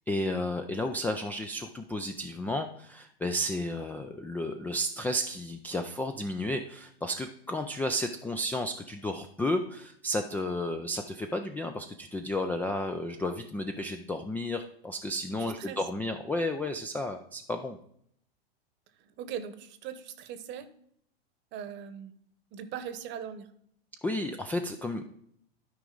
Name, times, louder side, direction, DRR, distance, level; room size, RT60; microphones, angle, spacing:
voice 1, 0.1-17.8 24.0-25.1, left 1 dB, 5° left, 5 dB, 0.3 m, -32 dB
voice 2, 15.4-15.9 19.0-20.7 21.5-22.1 22.5-23.5, right 8 dB, 35° right, 12 dB, 1.0 m, -40 dB
12.5 x 5.0 x 3.8 m, 0.70 s
hypercardioid pair, 110°, 30 cm